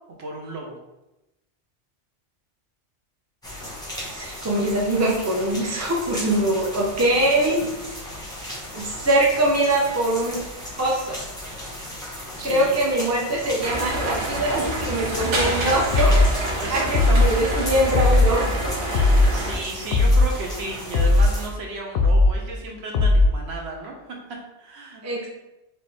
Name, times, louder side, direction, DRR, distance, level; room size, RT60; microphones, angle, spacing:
voice 1, 0.1-0.8 7.0-7.1 12.4-12.8 14.4-15.7 16.5-17.3 18.9-25.3, right 2 dB, 65° right, 0 dB, 0.9 m, -34 dB
sound 1, 3.4-21.5, equal, 5° left, 1.0 m, -36 dB
voice 2, 4.1-8.2 8.7-10.4 10.8-11.2 12.4-16.1 16.7-18.7 25.0-25.3, right 1 dB, 15° right, -3 dB, 0.6 m, -23 dB
sound 2, 13.6-19.6, right 1 dB, 85° right, 1.1 m, -27 dB
sound 3, 15.9-16.3 16.9-17.3 17.9-18.3 18.9-19.3 19.9-20.3 20.9-21.3 21.9-22.3 22.9-23.3, left 2 dB, 60° left, 0.7 m, -17 dB
4.3 x 2.8 x 3.2 m, 0.95 s
omnidirectional pair, 1.2 m